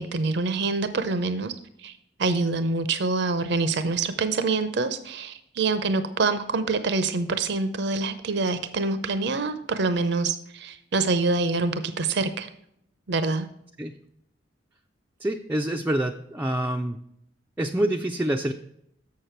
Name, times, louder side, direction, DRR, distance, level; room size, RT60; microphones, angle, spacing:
voice 1, 0.0-1.5 1.8-1.9 2.2-12.5 13.1-13.5, right 3 dB, 65° right, 11 dB, 0.6 m, -26 dB
voice 2, 15.2-17.0 17.6-18.5, right 1 dB, 10° right, 3 dB, 0.4 m, -26 dB
7.2 x 6.6 x 4.4 m, 0.74 s
head